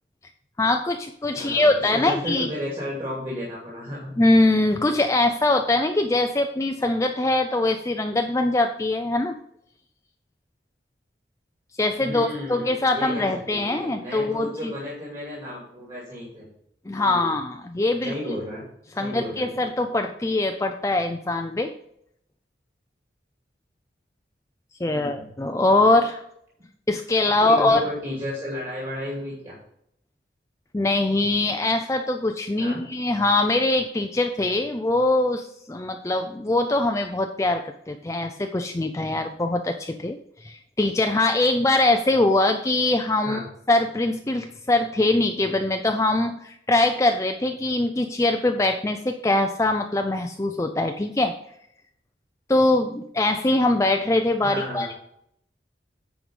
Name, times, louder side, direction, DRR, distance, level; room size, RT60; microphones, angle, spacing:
voice 1, 0.6-2.5 4.2-9.4 11.8-14.7 16.9-18.1 19.0-21.7 24.8-26.2 26.9-27.8 30.7-43.4 43.7-51.3 52.5-54.9, left 2 dB, 15° left, 5 dB, 0.4 m, -22 dB
voice 2, 1.3-4.1 12.0-16.4 16.9-17.3 18.0-18.6 18.9-19.5 24.9-25.3 27.3-29.5 32.6-32.8 43.2-43.5 54.4-54.9, left 1 dB, 30° right, -4 dB, 2.6 m, -33 dB
9.9 x 4.7 x 5.4 m, 0.73 s
head